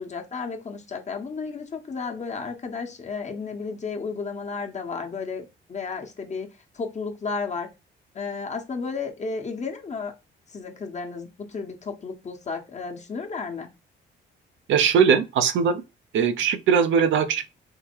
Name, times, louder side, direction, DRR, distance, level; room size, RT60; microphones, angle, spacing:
voice 1, 0.0-6.5 6.7-7.7 8.1-10.1 10.5-13.7, left 4 dB, 35° left, 1.0 m, -33 dB
voice 2, 14.7-15.8 16.1-17.5, right 7 dB, 75° right, 0.6 m, -20 dB
3.7 x 2.2 x 4.4 m
cardioid pair, 90°, 20 cm